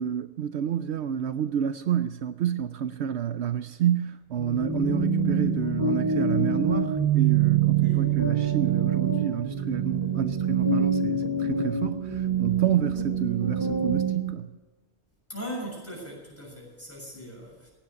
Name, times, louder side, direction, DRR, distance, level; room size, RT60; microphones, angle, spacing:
voice 1, 0.0-14.5, right 9 dB, 75° right, 0.9 m, -29 dB
sound 1, 4.4-14.3, right 6 dB, 15° right, 3.0 m, -25 dB
voice 2, 7.8-8.1 15.3-17.7, right 1 dB, 10° left, 6.9 m, -39 dB
16.0 x 10.0 x 7.9 m
omnidirectional pair, 1.2 m